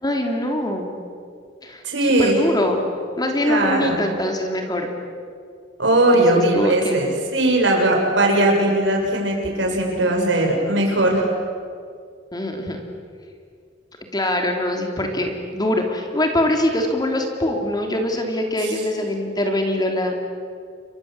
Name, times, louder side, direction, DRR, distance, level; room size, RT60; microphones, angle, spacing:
voice 1, 0.0-1.0 1.6-2.8 3.2-4.9 6.1-7.0 12.3-12.8 14.1-20.1, left 1 dB, 20° left, 3 dB, 3.2 m, -23 dB
voice 2, 1.8-2.4 3.5-4.0 5.8-11.3 18.6-18.7, right 1 dB, 70° right, 0 dB, 6.9 m, -19 dB
29.5 x 23.5 x 8.0 m, 2.2 s
head